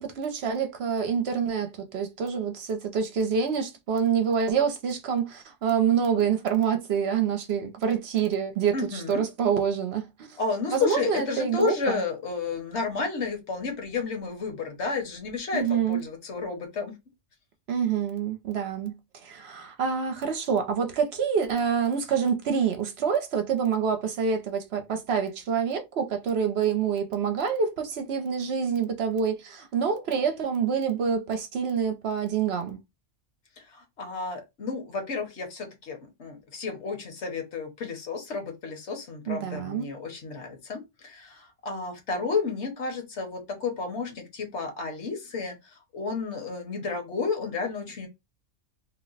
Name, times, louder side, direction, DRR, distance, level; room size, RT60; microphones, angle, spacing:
voice 1, 0.0-10.4 10.7-12.0 15.5-16.0 17.7-32.8 39.3-39.9, right 7 dB, 65° right, 0.8 m, -27 dB
voice 2, 8.7-9.2 10.4-17.0 33.6-48.1, left 4 dB, 65° left, 1.2 m, -32 dB
2.9 x 2.1 x 3.8 m
omnidirectional pair, 1.3 m